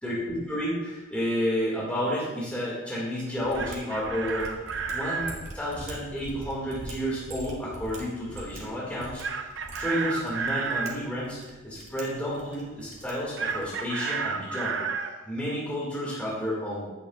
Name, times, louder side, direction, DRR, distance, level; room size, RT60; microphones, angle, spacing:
voice 1, 0.0-4.6 4.9-9.2 9.8-14.8 15.3-16.8, equal, 5° left, -7 dB, 2.2 m, -31 dB
Chicken rooster, 3.3-5.4 9.2-11.0 13.4-15.1, right 5 dB, 60° right, 0.6 m, -31 dB
Mechanisms, 3.4-13.9, right 1 dB, 85° right, 1.9 m, -44 dB
9.5 x 8.8 x 2.5 m, 1.2 s
head